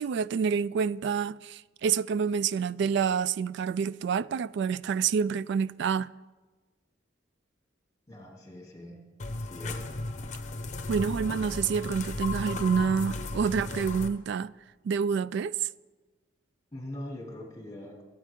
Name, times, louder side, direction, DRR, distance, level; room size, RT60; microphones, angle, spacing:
voice 1, 0.0-6.1 10.9-14.5 14.8-15.5, right 6 dB, 65° right, 0.3 m, -28 dB
voice 2, 8.1-9.0 9.3-9.9 16.7-18.0, left 1 dB, 20° left, 2.8 m, -42 dB
sound 1, 9.2-14.1, left 3 dB, 40° left, 0.8 m, -35 dB
20.5 x 8.9 x 3.7 m
head